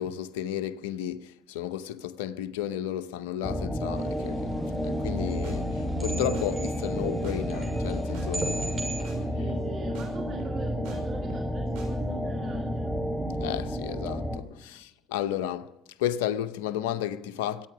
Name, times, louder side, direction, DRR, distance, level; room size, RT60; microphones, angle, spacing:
voice 1, 0.0-9.1 13.4-17.7, left 11 dB, 85° left, 0.7 m, -33 dB
sound 1, 3.4-14.4, equal, ahead, 3.3 m, -31 dB
sound 2, 4.0-9.0, right 2 dB, 25° right, 6.6 m, -39 dB
sound 3, 5.0-5.2 5.4-5.5 5.9-6.1 6.3-6.4 6.8-7.0 7.2-7.3 7.7-8.3 8.6-8.8 9.0-9.2 9.5-9.7 9.9-10.1 10.4-11.0 11.3-11.5 11.8-11.9, right 4 dB, 80° right, 5.1 m, -44 dB
voice 2, 9.3-12.9 14.6-14.8, right 4 dB, 55° right, 2.6 m, -43 dB
24.0 x 9.3 x 6.1 m
hypercardioid pair, 60°, 0 cm